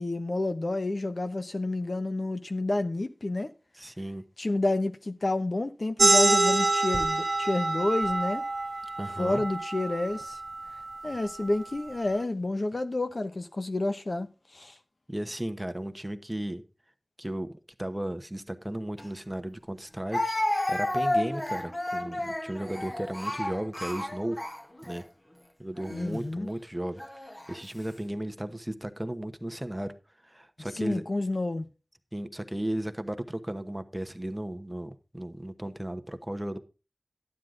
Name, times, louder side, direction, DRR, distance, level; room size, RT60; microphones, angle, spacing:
voice 1, 0.0-3.5 4.4-8.4 9.2-10.4 11.0-14.3 14.5-14.7 25.9-26.5 30.6-31.7, left 2 dB, 60° left, 0.9 m, -29 dB
voice 2, 3.7-4.2 9.0-9.4 15.1-16.6 17.2-17.5 17.8-24.4 24.8-25.0 25.6-27.0 27.3-29.9 30.2-31.0 32.1-36.6, right 1 dB, 15° right, 1.0 m, -35 dB
sound 1, 6.0-11.2, right 2 dB, 75° right, 0.6 m, -26 dB
Speech, 19.0-19.1 20.1-25.0 25.8-26.0 27.0-27.6, left 1 dB, 30° left, 1.8 m, -31 dB
12.0 x 9.4 x 3.8 m
wide cardioid pair, 60°, 0 cm